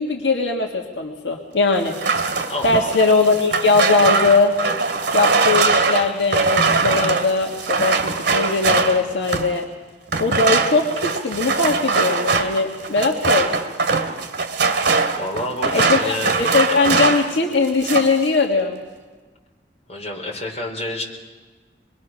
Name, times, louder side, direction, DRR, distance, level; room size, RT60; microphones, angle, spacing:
voice 1, 0.0-1.9 2.6-4.5 5.1-8.0 8.3-9.6 10.2-13.5 15.6-18.8, left 3 dB, 75° left, 1 dB, 1.7 m, -20 dB
sound 1, 1.9-9.6 10.1-17.4 17.6-18.2, right 4 dB, 65° right, 2.3 m, -21 dB
voice 2, 2.5-2.9 15.2-16.8 19.9-21.0, left 1 dB, 35° left, -1 dB, 4.5 m, -28 dB
26.5 x 22.0 x 6.3 m, 1.4 s
head